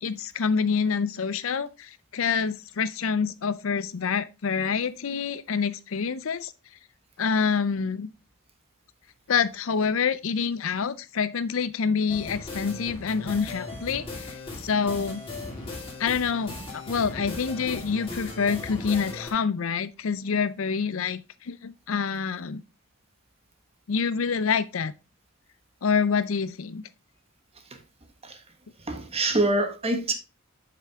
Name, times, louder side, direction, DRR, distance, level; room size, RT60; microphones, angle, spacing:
voice 1, 0.0-6.5 7.2-8.1 9.3-15.2 16.0-22.6 23.9-24.9 25.8-26.8, left 6 dB, 65° left, 0.5 m, -27 dB
sound 1, 12.1-19.3, left 2 dB, 25° left, 2.4 m, -38 dB
voice 2, 28.8-30.1, right 2 dB, 30° right, 1.3 m, -25 dB
7.4 x 6.0 x 3.5 m
head